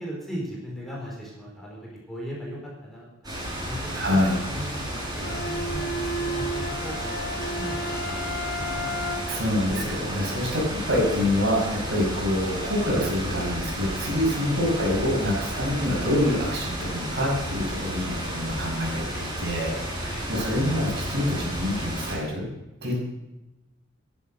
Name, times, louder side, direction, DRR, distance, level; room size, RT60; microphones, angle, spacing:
voice 1, 0.0-1.8 2.1-3.4 3.6-9.0 20.0-20.3, equal, ahead, -4 dB, 4.6 m, -38 dB
sound 1, 3.2-22.2, equal, 20° right, 7.0 m, -32 dB
voice 2, 3.9-4.4 9.3-22.5 22.8-23.0, left 1 dB, 55° right, -1 dB, 6.4 m, -26 dB
Bowed string instrument, 5.2-9.5, equal, 50° left, 1.6 m, -32 dB
15.0 x 11.0 x 6.6 m, 1.0 s
head